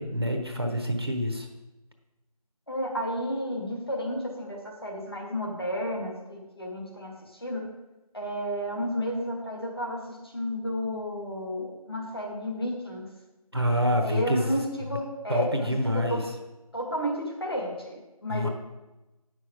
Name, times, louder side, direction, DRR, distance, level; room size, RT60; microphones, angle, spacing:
voice 1, 0.0-1.5 13.5-14.6 15.3-16.3 18.3-18.5, equal, 40° right, 3 dB, 1.0 m, -27 dB
voice 2, 2.7-7.6 8.1-13.1 14.0-16.2 16.7-18.5, equal, 40° left, -1 dB, 1.8 m, -32 dB
9.4 x 6.3 x 4.8 m, 1.0 s
figure-of-eight pair, 180°, 20 cm